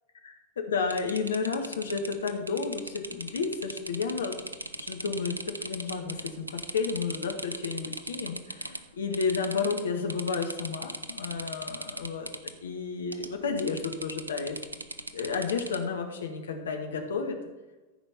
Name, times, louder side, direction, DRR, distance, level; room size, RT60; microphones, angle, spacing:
voice 1, 0.2-4.3 4.8-12.3 12.6-14.6 15.1-17.4, left 5 dB, 65° left, 3 dB, 1.8 m, -32 dB
sound 1, 0.9-8.8 9.1-9.8 10.1-12.5 13.1-13.3 13.6-15.8, right 2 dB, 80° right, 0.7 m, -38 dB
14.0 x 5.1 x 6.8 m, 1.2 s
figure-of-eight pair, 90°, 0 cm